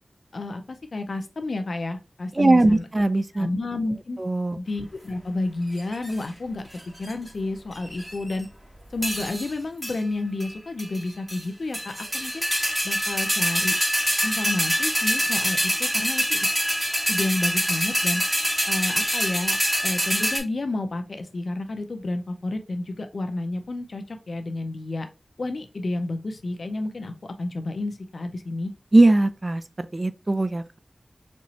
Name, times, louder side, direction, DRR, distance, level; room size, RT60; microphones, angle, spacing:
voice 1, 0.3-2.9 3.3-4.2 4.6-6.7 7.0-8.5 8.9-12.4 12.8-13.8 14.2-16.5 17.1-18.2 18.7-19.6 19.8-25.1 25.4-28.7, left 2 dB, 80° left, 0.6 m, -30 dB
voice 2, 2.4-3.5 4.2-4.6 28.9-30.8, right 2 dB, 40° right, 0.4 m, -20 dB
sound 1, 5.8-6.2 6.8-7.3 7.8-8.4 9.0-9.5 9.8-10.0 10.4-10.5 10.8-11.4 11.7-20.4, equal, 15° right, 1.6 m, -25 dB
4.3 x 3.0 x 2.8 m
wide cardioid pair, 60°, 0 cm